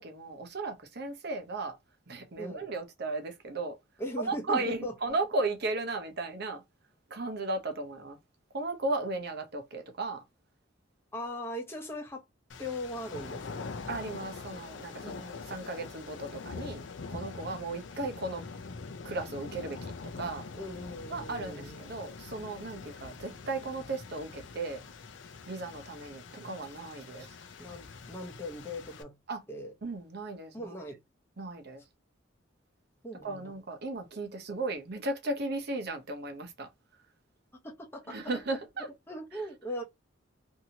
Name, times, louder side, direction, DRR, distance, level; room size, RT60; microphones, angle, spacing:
voice 1, 0.0-1.8 2.1-3.8 4.2-6.6 7.1-8.2 8.5-10.2 13.9-16.8 17.1-18.4 19.0-20.5 21.1-24.8 25.5-27.4 29.3-29.4 29.8-30.7 31.4-31.8 33.2-36.7 38.1-38.9, right 2 dB, 55° right, 0.8 m, -35 dB
voice 2, 4.0-4.9 11.1-12.2 12.6-13.7 15.0-15.6 20.5-21.9 27.6-29.2 29.5-29.7 30.5-31.0 33.0-33.5 37.6-38.2 39.1-39.8, left 1 dB, 15° left, 0.8 m, -39 dB
sound 1, 12.5-29.0, left 4 dB, 70° left, 0.5 m, -44 dB
2.8 x 2.7 x 2.8 m
head